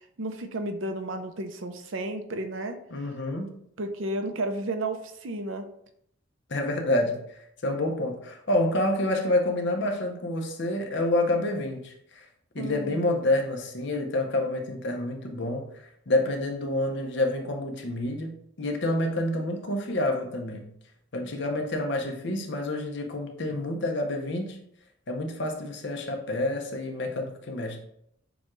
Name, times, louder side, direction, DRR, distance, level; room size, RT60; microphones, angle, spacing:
voice 1, 0.2-2.8 3.8-5.7 12.6-13.3, right 1 dB, 70° right, 7 dB, 0.6 m, -32 dB
voice 2, 2.9-3.6 6.5-7.2 7.6-12.3 12.5-15.7 16.1-20.7 21.1-24.6 25.1-27.8, left 1 dB, 60° left, 3 dB, 0.7 m, -28 dB
7.0 x 2.3 x 3.0 m, 0.71 s
head